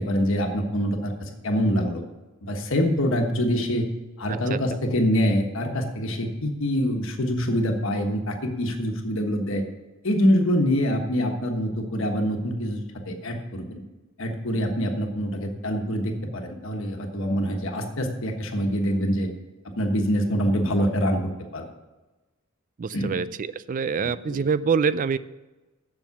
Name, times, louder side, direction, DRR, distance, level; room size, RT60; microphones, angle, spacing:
voice 1, 0.0-2.0 2.4-3.8 4.2-9.6 10.0-12.8 13.1-13.8 14.2-19.3 19.8-21.2 21.5-21.6 22.9-23.1 24.0-24.5, equal, 65° left, 3 dB, 1.3 m, -25 dB
voice 2, 22.8-25.2, right 5 dB, 40° right, 16 dB, 0.4 m, -25 dB
7.4 x 7.2 x 8.2 m, 1.1 s
head